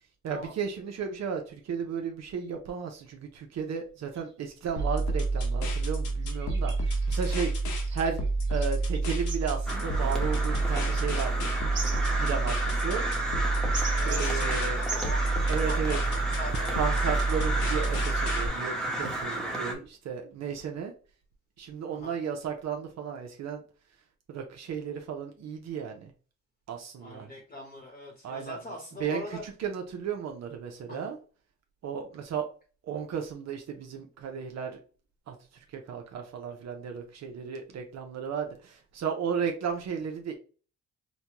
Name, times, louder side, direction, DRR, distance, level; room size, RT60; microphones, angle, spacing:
voice 1, 0.2-7.5 7.9-8.2 8.5-11.5 12.2-13.0 14.1-14.8 15.5-16.0 16.7-20.9 21.6-23.6 24.3-26.1 26.7-27.3 28.2-28.6 29.0-31.2 31.8-32.5 32.9-34.8 35.3-35.4 35.7-40.3, right 7 dB, 60° right, 3 dB, 0.7 m, -34 dB
sound 1, 3.9-4.0 4.1-4.3 4.8-4.9 5.4-15.9, right 3 dB, 40° right, 1.3 m, -43 dB
sound 2, 4.8-18.5, right 3 dB, 80° left, 1.0 m, -28 dB
Crow, 9.7-19.7, right 1 dB, ahead, 1.0 m, -32 dB
voice 2, 13.9-15.2 15.7-16.8 21.9-22.2 27.0-29.4 30.9-31.1, left 1 dB, 25° left, 1 dB, 1.0 m, -41 dB
4.1 x 2.2 x 2.9 m, 0.38 s
cardioid pair, 90°, 30 cm